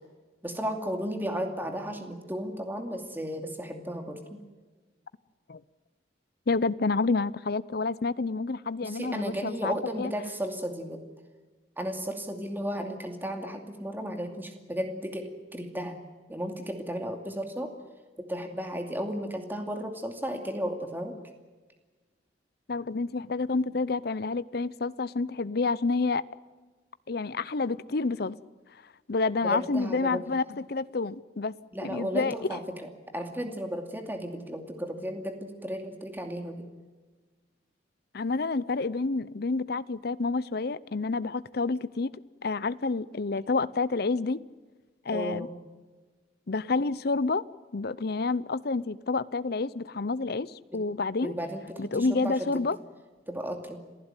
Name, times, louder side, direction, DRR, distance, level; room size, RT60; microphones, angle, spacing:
voice 1, 0.4-4.4 8.8-11.0 11.8-16.0 16.3-17.7 18.2-21.2 29.4-30.2 31.7-36.7 45.1-45.5 50.7-50.8 51.2-52.6 53.3-53.8, equal, 10° right, 5 dB, 2.5 m, -34 dB
voice 2, 6.5-10.1 22.7-26.2 27.1-28.4 29.1-31.5 31.8-32.6 38.1-42.1 42.4-44.4 45.0-45.5 46.5-47.4 47.7-51.3 51.8-52.8, left 3 dB, 55° left, 17 dB, 0.7 m, -29 dB
27.0 x 15.5 x 9.1 m, 1.3 s
head